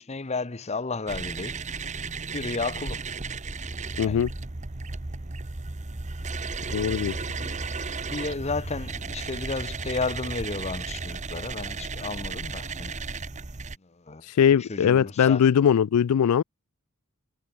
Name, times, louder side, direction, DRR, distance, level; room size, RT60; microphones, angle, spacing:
voice 1, 0.0-1.6 2.3-3.1 4.0-4.2 7.2-7.6 8.1-13.0 13.8-14.2 14.6-15.4, left 3 dB, 30° left, 0.8 m, -33 dB
sound 1, 1.1-13.8, right 4 dB, 35° right, 1.0 m, -34 dB
voice 2, 4.0-4.3 6.7-7.2 14.2-16.4, left 8 dB, 90° left, 0.4 m, -21 dB
head